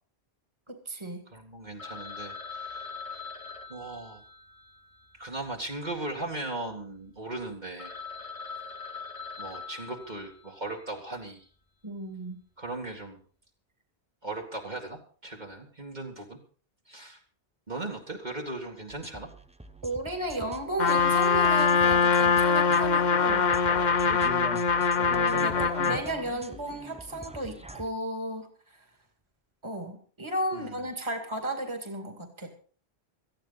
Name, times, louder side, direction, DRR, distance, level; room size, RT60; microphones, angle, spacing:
voice 1, 0.7-1.3 11.8-12.4 19.8-23.5 25.1-28.8 29.6-32.5, right 1 dB, 25° right, 5 dB, 2.3 m, -34 dB
voice 2, 1.3-3.2 3.7-4.2 5.2-8.0 9.4-11.4 12.6-13.2 14.2-16.4 16.9-17.2 17.7-19.3 24.0-24.4 30.5-30.7, right 2 dB, 45° right, -1 dB, 2.3 m, -38 dB
Telephone, 1.8-6.1 6.4-6.5 7.1-7.2 7.5-7.6 7.8-10.8, left 5 dB, 30° left, 1.7 m, -42 dB
sound 1, 18.9-27.9, right 1 dB, 5° right, 0.9 m, -43 dB
Trumpet, 20.8-26.1, left 5 dB, 45° left, 0.9 m, -23 dB
18.0 x 14.0 x 4.1 m, 0.42 s
omnidirectional pair, 1.1 m